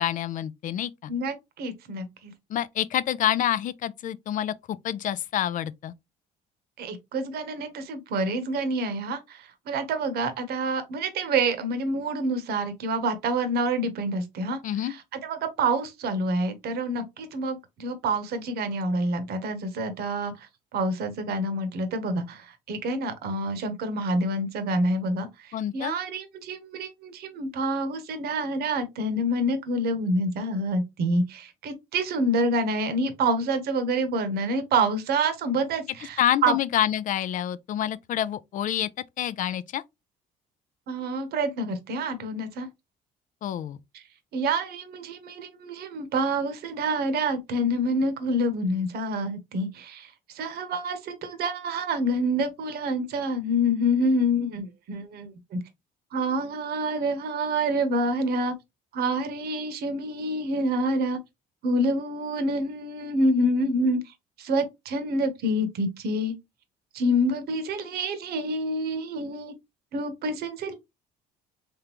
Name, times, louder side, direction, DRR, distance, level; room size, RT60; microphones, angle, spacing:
voice 1, 0.0-1.1 2.5-5.9 14.6-14.9 25.5-26.0 36.2-38.9 39.2-39.8 43.4-43.8, left 11 dB, 50° left, 0.4 m, -27 dB
voice 2, 1.1-2.3 6.8-14.6 14.9-15.0 15.2-20.5 20.7-36.5 40.9-42.7 44.3-55.6 56.1-58.5 58.9-61.2 61.6-64.0 64.4-66.3 66.9-69.5 69.9-70.7, right 1 dB, 70° right, 1.0 m, -27 dB
3.7 x 3.4 x 3.0 m
cardioid pair, 110°, 17 cm